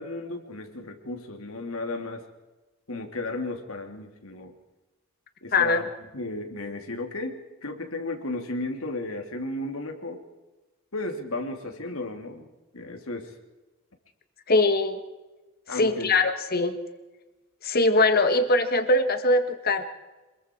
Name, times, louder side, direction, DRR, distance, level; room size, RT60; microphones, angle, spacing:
voice 1, 0.0-2.2 2.9-4.5 5.4-5.9 6.1-10.2 10.9-12.5 12.7-13.3 15.7-16.1, left 2 dB, 70° left, 5 dB, 2.9 m, -34 dB
voice 2, 5.5-5.9 14.5-15.0 15.7-16.8 17.6-19.8, left 2 dB, 45° left, 8 dB, 1.8 m, -22 dB
27.0 x 21.5 x 4.6 m, 1.2 s
head